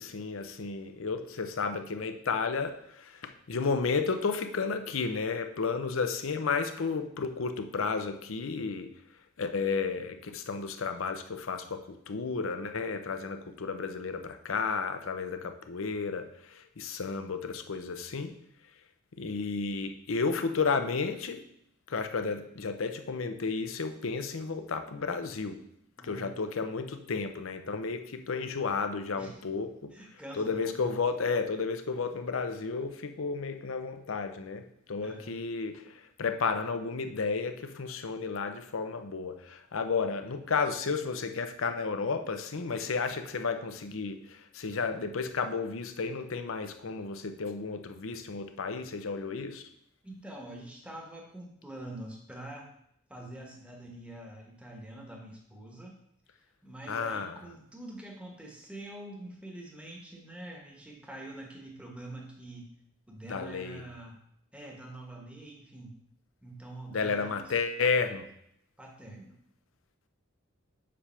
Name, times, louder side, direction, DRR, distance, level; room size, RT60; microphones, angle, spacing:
voice 1, 0.0-8.9 9.4-18.4 19.2-21.4 21.9-25.6 26.0-30.0 30.3-49.6 56.9-57.4 63.2-63.8 66.9-68.3, left 4 dB, 70° left, 8 dB, 0.6 m, -32 dB
voice 2, 26.0-26.5 29.2-29.4 29.9-31.0 35.0-35.4 50.0-52.7 53.1-56.0 56.6-62.7 63.1-64.2 64.5-66.0 66.4-67.5 68.8-69.4, right 1 dB, 5° right, 0 dB, 1.2 m, -45 dB
7.6 x 3.4 x 5.6 m, 0.72 s
head